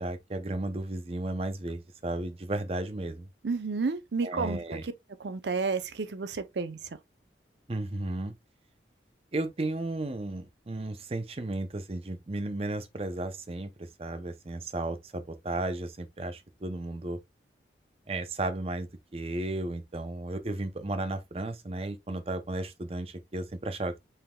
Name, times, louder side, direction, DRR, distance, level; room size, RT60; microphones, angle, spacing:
voice 1, 0.0-3.3 4.2-4.8 7.7-8.3 9.3-17.2 18.1-24.0, right 2 dB, 35° right, 0.6 m, -34 dB
voice 2, 3.4-4.9 5.2-6.8, right 4 dB, 75° right, 0.6 m, -31 dB
5.6 x 3.6 x 2.2 m
head